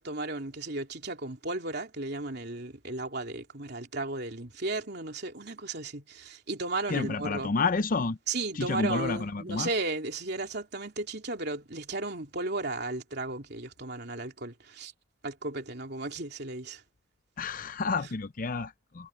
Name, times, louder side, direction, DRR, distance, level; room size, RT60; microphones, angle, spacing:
voice 1, 0.0-7.5 8.3-14.9 15.2-16.8, right 2 dB, 55° right, 3.2 m, -35 dB
voice 2, 6.9-8.2 8.6-9.7 17.4-19.1, left 4 dB, 45° left, 0.5 m, -30 dB
head